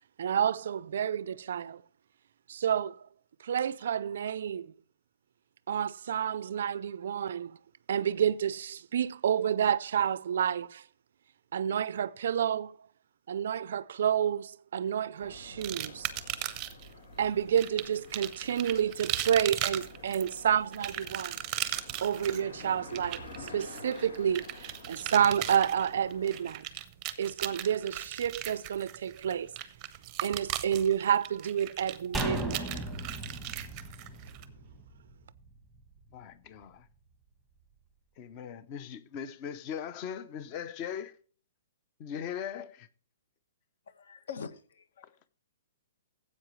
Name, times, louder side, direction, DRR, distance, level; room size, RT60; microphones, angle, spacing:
voice 1, 0.2-1.8 2.5-3.1 3.4-4.7 5.7-7.6 7.9-10.8 11.5-12.7 13.3-16.1 17.2-21.4 22.0-26.6 27.2-29.5 30.2-32.7, right 9 dB, 55° right, 0.4 m, -29 dB
sound 1, 15.2-26.5, left 3 dB, 85° left, 2.8 m, -49 dB
sound 2, 15.6-16.9 17.6-34.4, right 13 dB, 20° right, 0.7 m, -37 dB
sound 3, 32.1-35.5 35.8-35.9, right 1 dB, ahead, 1.2 m, -36 dB
voice 2, 36.1-36.8 38.2-41.1 42.0-42.9, left 8 dB, 20° left, 0.6 m, -39 dB
voice 3, 43.9-45.1, left 6 dB, 60° left, 1.2 m, -44 dB
15.0 x 8.2 x 3.1 m
hypercardioid pair, 175°, 0 cm